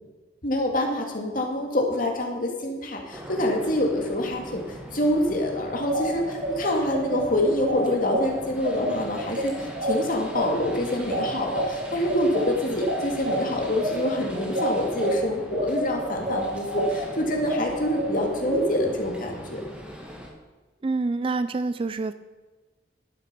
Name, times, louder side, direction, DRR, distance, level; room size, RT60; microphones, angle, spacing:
voice 1, 0.4-19.6, left 1 dB, 45° left, 2 dB, 2.0 m, -26 dB
sound 1, 3.1-20.3, equal, 5° right, 1.8 m, -41 dB
sound 2, 5.7-15.1 15.5-18.6, right 1 dB, 45° right, 2.8 m, -29 dB
voice 2, 20.8-22.1, right 3 dB, 30° right, 13 dB, 0.3 m, -26 dB
11.0 x 9.0 x 6.0 m, 1.3 s
head